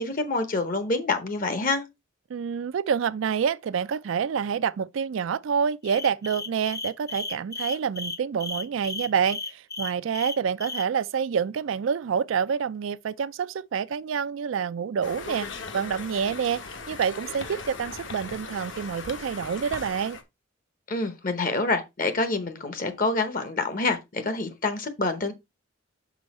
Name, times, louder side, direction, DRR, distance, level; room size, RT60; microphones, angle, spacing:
voice 1, 0.0-1.8 20.9-25.3, left 3 dB, 45° left, 0.9 m, -27 dB
voice 2, 2.3-15.5 15.7-16.6 16.9-20.2, right 7 dB, 75° right, 0.4 m, -27 dB
sound 1, 5.8-10.9, left 3 dB, 15° left, 0.6 m, -34 dB
Conversation, 15.0-20.2, left 4 dB, 65° left, 1.2 m, -38 dB
6.2 x 5.2 x 4.2 m
head